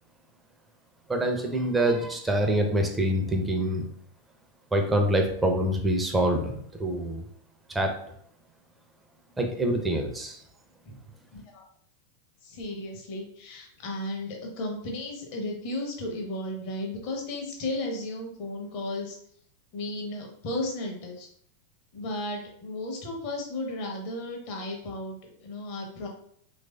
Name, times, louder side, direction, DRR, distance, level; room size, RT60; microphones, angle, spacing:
voice 1, 1.1-3.8 4.7-7.2 7.7-8.0 9.4-10.4, right 1 dB, 10° right, 3 dB, 0.5 m, -25 dB
voice 2, 11.3-11.7 12.4-19.2 19.7-21.3 21.9-26.1, left 1 dB, 45° left, 2 dB, 0.8 m, -34 dB
3.1 x 2.5 x 2.2 m, 0.65 s
figure-of-eight pair, 90°, 0 cm